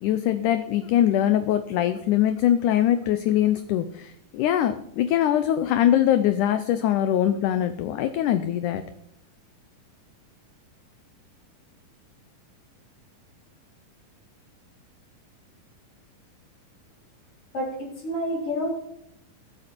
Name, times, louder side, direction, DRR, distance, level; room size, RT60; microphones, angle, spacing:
voice 1, 0.0-8.8, left 11 dB, 75° left, 10 dB, 2.0 m, -22 dB
voice 2, 17.5-18.7, equal, 40° left, -2 dB, 5.1 m, -29 dB
21.5 x 7.9 x 4.4 m, 0.79 s
omnidirectional pair, 4.1 m